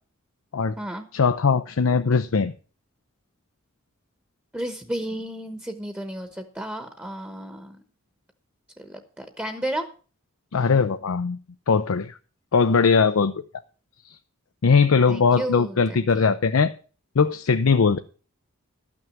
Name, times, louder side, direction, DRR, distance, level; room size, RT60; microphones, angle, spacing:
voice 1, 1.1-2.5 10.5-11.4 11.7-12.2 12.5-13.3 14.0-14.2 14.6-16.7 17.2-18.0, left 5 dB, 75° left, 0.5 m, -20 dB
voice 2, 4.5-7.8 8.8-9.9 15.1-16.3, right 1 dB, 10° right, 1.0 m, -33 dB
12.5 x 6.1 x 7.1 m
head